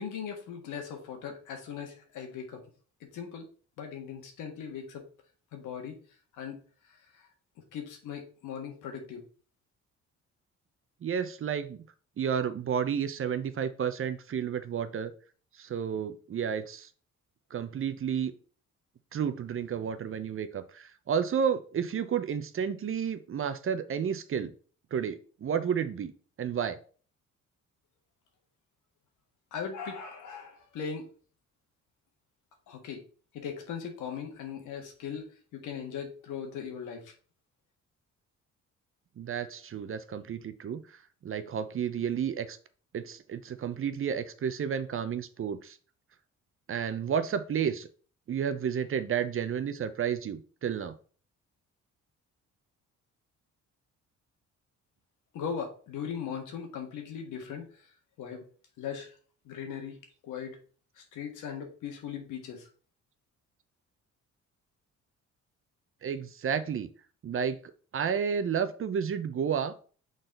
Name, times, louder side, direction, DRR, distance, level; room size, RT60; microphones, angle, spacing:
voice 1, 0.0-2.6 3.1-3.5 3.8-5.1 5.5-6.0 6.3-7.3 7.7-9.2 29.5-31.1 32.7-33.0 33.3-37.1 55.3-57.7 58.2-58.4 58.8-59.1 59.4-60.6 61.0-62.7, left 7 dB, 85° left, 4 dB, 1.6 m, -39 dB
voice 2, 11.0-11.8 12.2-15.1 15.6-16.9 17.5-18.3 19.1-24.5 24.9-26.1 26.4-26.8 39.2-40.8 41.2-42.6 42.9-45.8 46.7-47.9 48.3-50.9 66.0-66.9 67.2-69.8, right 7 dB, 45° right, 11 dB, 0.7 m, -31 dB
6.3 x 4.1 x 3.8 m, 0.41 s
cardioid pair, 90°, 30 cm